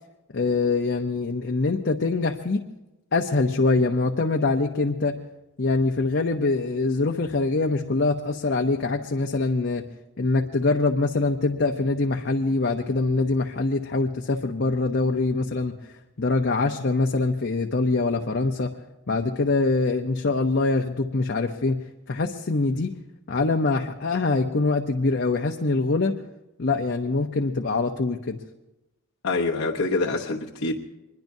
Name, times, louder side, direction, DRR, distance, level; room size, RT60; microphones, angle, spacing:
voice 1, 0.3-2.6 3.1-5.2 5.6-9.9 10.2-18.7 19.1-22.9 23.3-26.2 26.6-28.4, left 3 dB, 50° left, 3 dB, 0.7 m, -24 dB
voice 2, 29.2-30.7, left 3 dB, 75° left, -3 dB, 1.0 m, -25 dB
24.5 x 21.0 x 2.7 m, 1.0 s
head